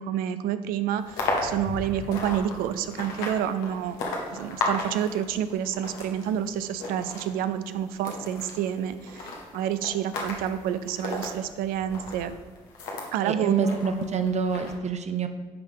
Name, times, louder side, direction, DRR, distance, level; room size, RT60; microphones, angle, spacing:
voice 1, 0.0-4.0 4.3-12.3 13.1-13.8, right 9 dB, 80° right, 12 dB, 0.5 m, -29 dB
sound 1, 1.0-13.1 13.6-14.7, left 2 dB, 85° left, 1.3 m, -35 dB
voice 2, 13.3-15.3, right 6 dB, 50° right, 8 dB, 0.9 m, -26 dB
10.5 x 3.6 x 5.2 m, 1.4 s
hypercardioid pair, 50°, 15 cm